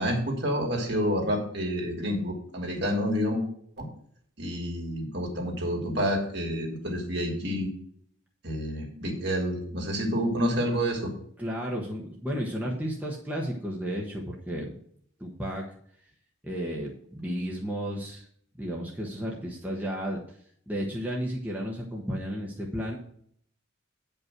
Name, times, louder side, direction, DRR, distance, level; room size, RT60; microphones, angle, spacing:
voice 1, 0.0-3.4 3.8-3.9 4.4-7.7 8.4-11.1, equal, 55° right, 0 dB, 2.8 m, -28 dB
voice 2, 11.4-14.8 15.2-15.6 16.4-18.3 18.5-20.4 20.7-23.0, equal, 10° right, -3 dB, 1.3 m, -33 dB
9.3 x 5.5 x 6.0 m, 0.64 s
head